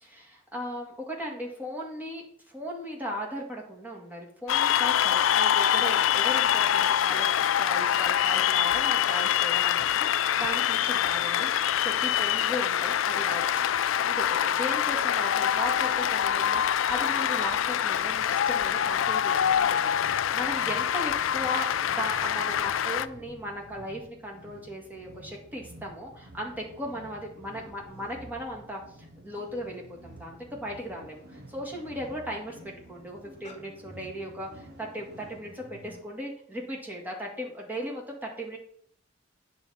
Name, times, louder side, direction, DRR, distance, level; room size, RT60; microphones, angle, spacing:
voice 1, 0.1-7.3 7.6-11.5 11.8-28.8 29.2-38.6, equal, 10° right, -1 dB, 2.0 m, -37 dB
Cheering / Applause, 4.5-23.1, left 10 dB, 70° left, 0.4 m, -25 dB
sound 1, 16.7-36.1, right 1 dB, 55° right, 1.1 m, -51 dB
sound 2, 27.6-27.7 27.9-28.3 28.8-30.3 30.9-31.1 31.4-33.6, left 2 dB, 35° left, 1.2 m, -54 dB
9.0 x 4.2 x 7.0 m, 0.64 s
head